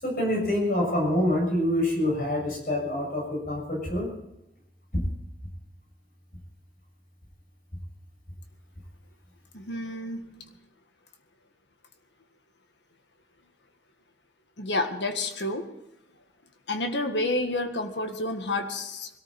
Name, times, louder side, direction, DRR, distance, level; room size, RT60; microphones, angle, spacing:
voice 1, 0.0-4.1, left 1 dB, 50° left, 0 dB, 6.5 m, -26 dB
voice 2, 9.7-10.2 14.6-15.6 16.7-19.1, left 2 dB, 85° left, 6 dB, 1.7 m, -29 dB
21.0 x 13.5 x 4.3 m, 0.87 s
head